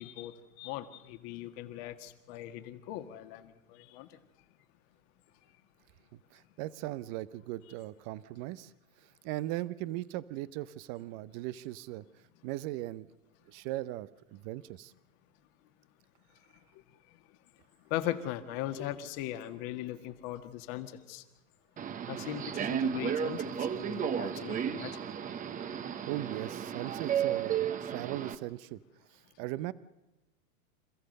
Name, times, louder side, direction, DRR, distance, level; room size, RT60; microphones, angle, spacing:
voice 1, 0.0-4.2 17.9-21.2 22.1-25.0, left 13 dB, 45° left, 1.8 m, -39 dB
voice 2, 6.1-8.7 9.2-12.0 12.4-13.1 13.5-14.9 26.1-28.8 29.1-29.7, right 16 dB, 35° right, 0.7 m, -38 dB
Subway metro underground, 21.8-28.3, right 8 dB, 20° right, 1.0 m, -33 dB
27.5 x 14.5 x 6.6 m
hypercardioid pair, 115°, 43 cm